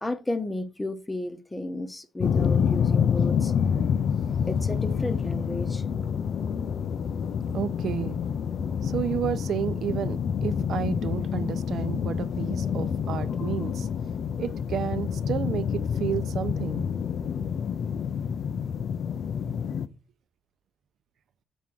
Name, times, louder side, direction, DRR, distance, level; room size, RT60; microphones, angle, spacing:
voice 1, 0.0-3.5 4.5-5.8, left 2 dB, 10° left, 0.9 m, -33 dB
sound 1, 2.2-19.9, left 7 dB, 55° left, 0.5 m, -27 dB
voice 2, 7.5-8.2 8.8-13.9 14.4-16.8, right 9 dB, 60° right, 0.7 m, -31 dB
7.1 x 3.7 x 6.0 m
cardioid pair, 115°, 0 cm